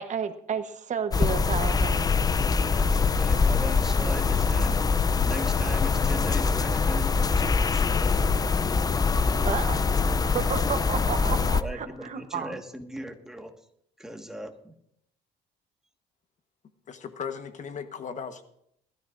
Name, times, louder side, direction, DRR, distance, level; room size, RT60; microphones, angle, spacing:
voice 1, 0.0-2.1 9.4-9.8 10.2-12.6, right 7 dB, 45° right, 9 dB, 1.1 m, -32 dB
sound 1, 1.1-11.6, left 5 dB, 25° left, 0.5 m, -24 dB
voice 2, 2.7-4.9 5.2-8.0 11.3-13.5 14.0-14.7, right 1 dB, 5° right, 4 dB, 1.6 m, -39 dB
voice 3, 16.9-18.4, left 6 dB, 45° left, 9 dB, 1.3 m, -37 dB
20.5 x 13.0 x 2.6 m, 0.73 s
cardioid pair, 100°, 17 cm